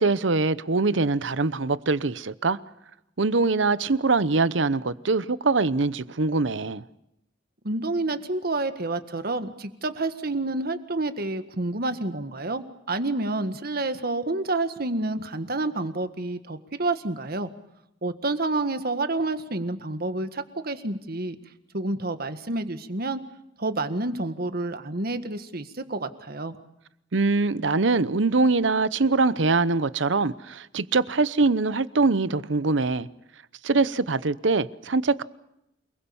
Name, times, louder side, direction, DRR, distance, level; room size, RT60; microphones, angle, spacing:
voice 1, 0.0-2.6 3.2-6.8 27.1-33.1 33.6-35.2, right 3 dB, 75° right, 0.9 m, -23 dB
voice 2, 7.6-17.5 18.0-21.4 21.7-23.2 23.6-26.6, right 2 dB, 55° right, 1.7 m, -29 dB
28.5 x 20.5 x 7.1 m
head